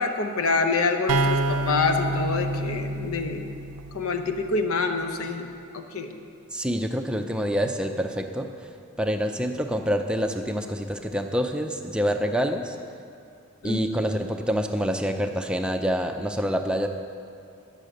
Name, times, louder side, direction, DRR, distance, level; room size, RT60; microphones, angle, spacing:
voice 1, 0.0-3.5 3.9-6.2 13.6-13.8, left 4 dB, 75° left, 6 dB, 0.8 m, -26 dB
sound 1, 1.1-4.7, right 2 dB, 80° right, 0.5 m, -28 dB
voice 2, 6.5-8.5 9.0-12.8 13.6-16.9, equal, 5° right, 4 dB, 0.4 m, -26 dB
9.7 x 6.7 x 7.7 m, 2.4 s
head